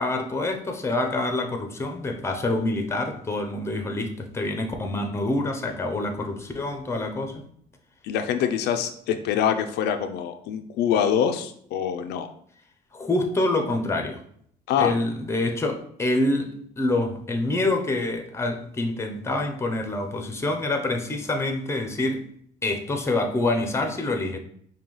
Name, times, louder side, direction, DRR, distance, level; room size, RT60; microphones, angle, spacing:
voice 1, 0.0-7.3 12.9-14.2 14.8-16.5 16.8-22.2 22.6-24.4, left 2 dB, 15° left, 5 dB, 0.6 m, -26 dB
voice 2, 8.0-12.3 14.7-14.9, left 8 dB, 75° left, 7 dB, 0.4 m, -25 dB
5.3 x 2.3 x 3.0 m, 0.65 s
cardioid pair, 110°, 17 cm